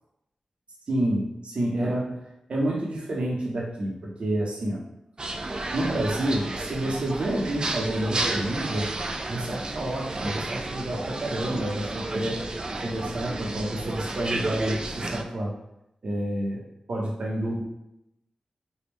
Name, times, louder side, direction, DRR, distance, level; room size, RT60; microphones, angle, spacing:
voice 1, 0.9-2.2 2.5-4.8 5.7-8.9 9.3-12.4 12.8-15.5 16.0-16.6 16.9-17.6, right 1 dB, 65° right, -3 dB, 0.9 m, -29 dB
sound 1, 5.2-15.2, right 2 dB, 40° right, 0.4 m, -32 dB
3.4 x 2.4 x 3.1 m, 0.85 s
cardioid pair, 45°, 2 cm